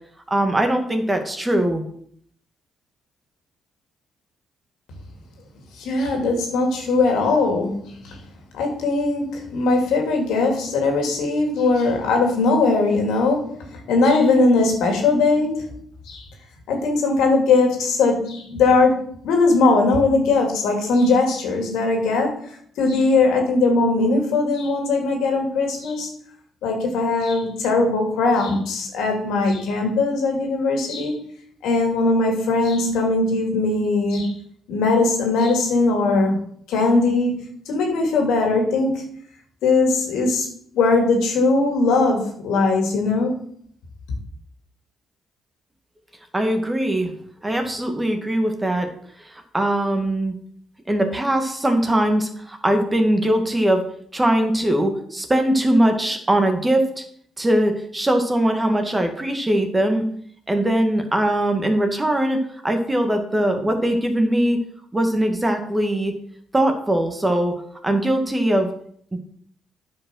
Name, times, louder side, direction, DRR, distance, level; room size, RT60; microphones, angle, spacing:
voice 1, 0.3-1.8 46.3-47.1 47.4-48.9 49.2-50.3 50.9-53.8 54.1-57.0 57.4-60.0 60.5-64.6 64.9-66.1 66.5-67.5 67.8-68.7 69.1-69.2, right 1 dB, 15° right, 5 dB, 1.7 m, -21 dB
voice 2, 5.8-8.2 8.5-15.7 16.1-16.2 16.7-26.1 26.6-31.2 31.6-34.3 34.7-36.4 36.7-39.0 39.6-40.5 40.7-43.4, left 3 dB, 85° left, 2 dB, 2.5 m, -20 dB
9.3 x 5.4 x 6.3 m, 0.63 s
cardioid pair, 90°, 0 cm